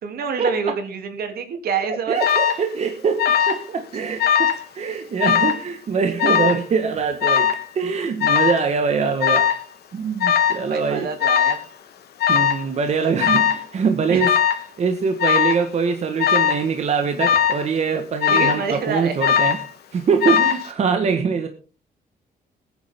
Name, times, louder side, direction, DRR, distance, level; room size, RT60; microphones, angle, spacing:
voice 1, 0.0-2.2 10.7-11.6 14.1-14.2 18.3-19.2, right 5 dB, 70° right, 6 dB, 2.8 m, -26 dB
voice 2, 1.9-9.5 9.9-11.1 12.3-14.3 14.8-19.6 19.9-21.5, right 5 dB, 45° right, 6 dB, 1.4 m, -23 dB
Alarm, 2.2-2.6 3.2-3.7 3.9-4.6 5.2-5.6 6.2-6.6 7.2-7.6 8.2-8.6 9.2-9.6 10.2-10.6 11.2-11.6 12.2-12.6 13.2-13.7 14.2-14.6 15.2-15.6 16.2-16.6 17.2-17.6 18.2-18.7 19.2-19.7 20.2-20.7, left 8 dB, 80° left, 2.2 m, -19 dB
20.5 x 9.7 x 3.6 m, 0.35 s
cardioid pair, 150°, 16 cm